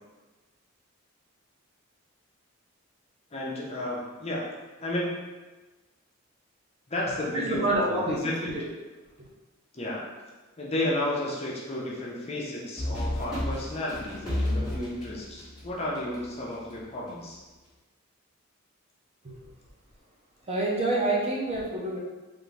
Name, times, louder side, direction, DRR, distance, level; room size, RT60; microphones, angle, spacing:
voice 1, 3.3-4.5 4.8-5.3 6.9-8.4 9.7-10.0 10.6-17.4, left 1 dB, 30° left, -4 dB, 0.6 m, -32 dB
voice 2, 7.3-8.6 9.2-9.3 19.2-19.4 20.4-22.0, right 2 dB, 30° right, -3 dB, 0.5 m, -28 dB
sound 1, 12.8-16.2, left 1 dB, 5° right, 1.2 m, -31 dB
3.5 x 2.6 x 3.2 m, 1.2 s
head